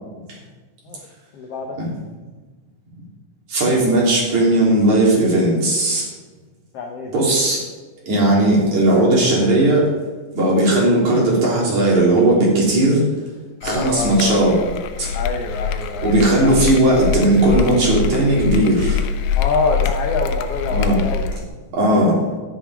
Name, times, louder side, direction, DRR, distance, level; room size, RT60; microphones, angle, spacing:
voice 1, 1.3-1.8 6.7-7.1 13.6-14.6 15.1-16.6 19.4-21.3 21.8-22.2, left 4 dB, 70° left, 1 dB, 1.5 m, -26 dB
voice 2, 3.5-6.1 7.1-7.6 8.1-9.8 10.3-13.0 13.6-14.6 15.0-15.1 16.0-19.1 20.7-21.0 21.7-22.1, right 1 dB, 60° right, -4 dB, 4.6 m, -16 dB
sound 1, 13.6-21.4, left 6 dB, 90° left, 2.5 m, -24 dB
11.5 x 10.0 x 4.9 m, 1.3 s
omnidirectional pair, 3.9 m